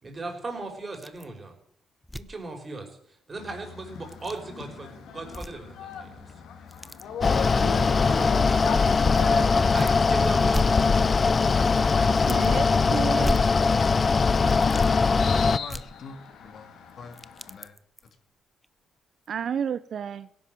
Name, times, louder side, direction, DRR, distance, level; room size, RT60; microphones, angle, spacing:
voice 1, 0.0-1.6 2.3-6.3 7.2-8.9 9.7-13.4, right 2 dB, 30° right, 4 dB, 5.3 m, -39 dB
sound 1, 0.9-1.4 1.7-1.8 2.0-2.4 3.9-4.4 5.2-5.8 6.2-7.1 7.9-8.0 9.1-10.0 10.2-11.4 11.7-11.8 12.2-12.7 13.2-14.0 14.4-14.9 15.7-16.6 16.9-18.1 18.6-18.7 19.2-19.3, equal, 5° left, 0.7 m, -36 dB
sound 2, 3.4-17.6, left 5 dB, 75° left, 2.9 m, -39 dB
Mechanical fan, 7.2-15.6, left 4 dB, 35° left, 0.6 m, -21 dB
voice 2, 12.3-13.4 19.3-20.3, right 7 dB, 60° right, 14 dB, 0.6 m, -31 dB
voice 3, 15.4-16.7 17.0-17.2 17.5-17.8 18.0-18.2, left 5 dB, 55° left, 7 dB, 2.5 m, -45 dB
17.0 x 11.0 x 7.7 m, 0.69 s
cardioid pair, 90°, 0 cm